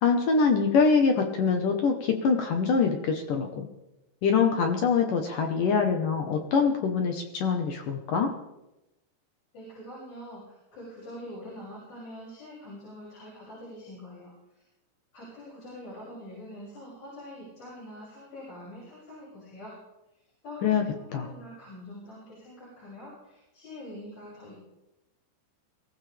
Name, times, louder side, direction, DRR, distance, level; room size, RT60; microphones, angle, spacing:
voice 1, 0.0-3.7 4.2-8.3 20.6-20.8 21.1-21.3, left 5 dB, 70° left, 4 dB, 2.0 m, -24 dB
voice 2, 9.5-14.6 15.1-19.8 20.4-24.6, left 1 dB, 35° left, -8 dB, 7.9 m, -44 dB
23.5 x 17.5 x 3.5 m, 0.95 s
omnidirectional pair, 5.5 m